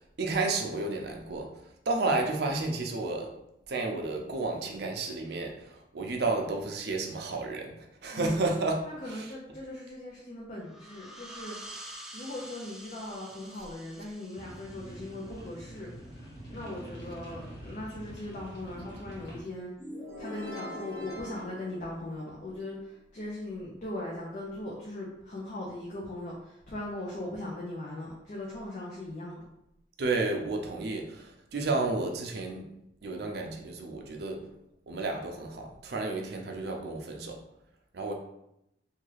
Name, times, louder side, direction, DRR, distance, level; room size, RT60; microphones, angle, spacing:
voice 1, 0.2-1.5 1.9-3.3 3.7-8.8 9.1-9.3 30.0-32.7 33.0-34.4 34.9-37.4 37.9-38.1, right 3 dB, 60° right, 2 dB, 0.5 m, -31 dB
voice 2, 8.1-8.5 8.8-11.6 12.1-15.9 16.5-19.7 20.2-29.4, left 1 dB, 45° left, -4 dB, 0.5 m, -39 dB
sound 1, 10.6-16.0, right 1 dB, 5° right, 0.3 m, -48 dB
sound 2, 14.3-19.4, right 1 dB, 70° left, 1.0 m, -45 dB
sound 3, 19.8-22.6, left 1 dB, 20° right, 0.9 m, -42 dB
2.8 x 2.3 x 3.2 m, 0.83 s
head